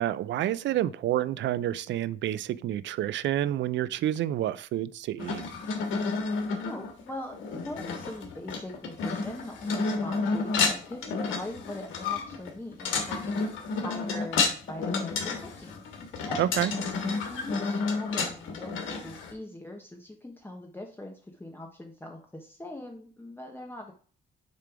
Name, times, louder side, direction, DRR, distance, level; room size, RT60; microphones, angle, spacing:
voice 1, 0.0-5.4 16.4-16.7, right 12 dB, 65° right, 0.4 m, -29 dB
sound 1, 5.2-19.3, left 4 dB, 80° left, 1.5 m, -30 dB
voice 2, 6.6-15.8 16.2-16.5 17.3-23.9, left 1 dB, 10° left, 1.1 m, -42 dB
6.8 x 3.3 x 4.9 m
cardioid pair, 90°, 20 cm